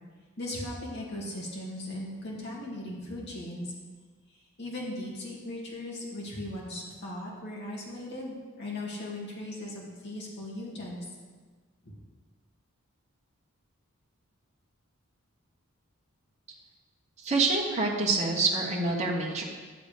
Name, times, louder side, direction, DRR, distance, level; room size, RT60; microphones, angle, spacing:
voice 1, 0.4-3.7 4.6-11.1 11.8-11.9, left 1 dB, 50° left, -4 dB, 2.4 m, -38 dB
voice 2, 17.2-19.4, right 3 dB, 30° right, -3 dB, 1.3 m, -26 dB
11.5 x 7.2 x 5.2 m, 1.4 s
head